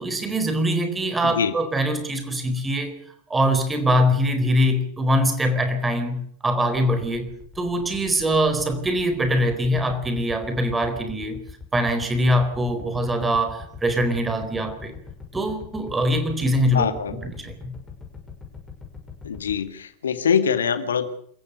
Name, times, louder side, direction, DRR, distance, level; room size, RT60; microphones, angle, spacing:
voice 1, 0.0-3.0 3.3-7.3 7.6-11.4 11.7-14.9 15.3-17.7, equal, 10° right, 8 dB, 4.3 m, -23 dB
voice 2, 1.2-1.5 16.7-17.3 19.2-21.1, left 7 dB, 65° left, 11 dB, 2.1 m, -24 dB
sound 1, 7.1-19.6, left 5 dB, 15° left, 6.6 m, -42 dB
27.5 x 15.0 x 6.7 m, 0.66 s
figure-of-eight pair, 90°, 0 cm